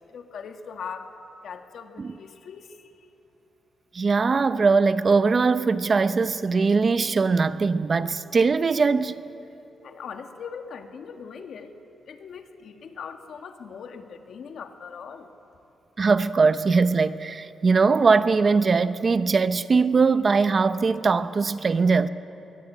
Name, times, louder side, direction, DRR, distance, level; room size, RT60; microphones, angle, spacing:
voice 1, 0.1-1.1 1.4-3.1 9.8-11.7 12.1-15.3, left 6 dB, 65° left, 1.8 m, -40 dB
voice 2, 3.9-9.2 16.0-22.1, right 4 dB, 35° right, 0.7 m, -21 dB
23.0 x 22.0 x 8.8 m
cardioid pair, 130°, 0 cm